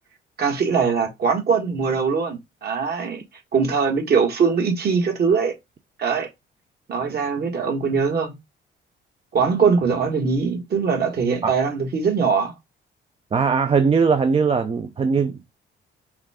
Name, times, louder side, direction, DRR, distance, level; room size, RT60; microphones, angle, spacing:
voice 1, 0.4-3.2 3.5-5.5 6.0-6.3 6.9-8.3 9.3-12.5, right 5 dB, 55° right, 1.6 m, -21 dB
voice 2, 13.3-15.5, right 5 dB, 30° right, 0.5 m, -20 dB
5.7 x 2.3 x 3.5 m
cardioid pair, 90°, 20 cm